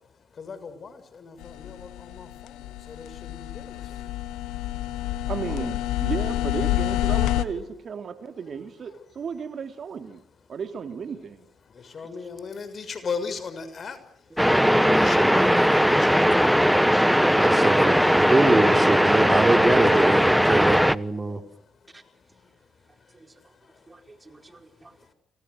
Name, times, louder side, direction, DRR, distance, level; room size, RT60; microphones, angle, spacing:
voice 1, 0.4-2.5 2.9-3.8 11.9-14.0 14.9-16.3 17.7-18.4, left 5 dB, 50° left, 11 dB, 6.4 m, -37 dB
sound 1, 1.4-7.4, left 15 dB, 80° left, 1.7 m, -28 dB
voice 2, 5.3-10.2 10.5-11.5, right 6 dB, 55° right, 7 dB, 3.0 m, -34 dB
sound 2, 14.4-20.9, equal, ahead, 1.1 m, -19 dB
voice 3, 17.3-21.4 23.9-24.0 24.3-24.4, right 2 dB, 25° right, 5 dB, 4.8 m, -24 dB
29.5 x 29.0 x 6.7 m, 0.68 s
hypercardioid pair, 50°, 0 cm